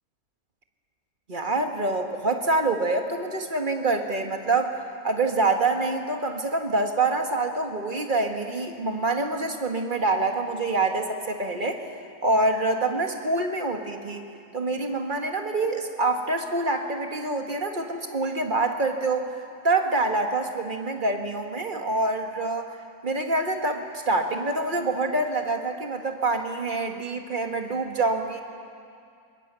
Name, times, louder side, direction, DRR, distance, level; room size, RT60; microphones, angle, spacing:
voice 1, 1.3-4.8 5.0-11.8 12.2-14.3 14.5-19.3 19.6-22.7 23.0-28.4, right 2 dB, 30° right, 4 dB, 1.7 m, -26 dB
25.0 x 22.0 x 6.9 m, 2.4 s
omnidirectional pair, 1.9 m